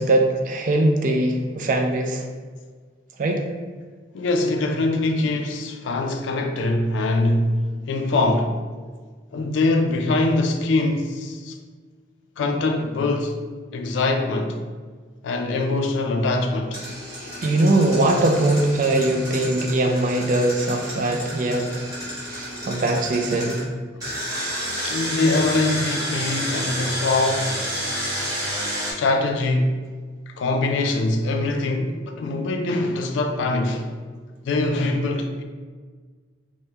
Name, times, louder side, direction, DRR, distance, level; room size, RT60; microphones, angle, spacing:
voice 1, 0.0-2.2 3.2-3.4 17.4-21.7 22.3-23.7, right 2 dB, 45° right, 0.3 m, -21 dB
voice 2, 4.1-8.6 9.3-11.6 12.4-13.4 13.7-14.6 15.2-16.9 24.8-27.6 28.9-29.9 30.4-33.9 34.4-35.4, left 2 dB, 80° left, 0.3 m, -23 dB
Engine, 16.7-23.6 24.0-28.9, equal, 20° right, 0.8 m, -30 dB
3.3 x 2.1 x 2.8 m
head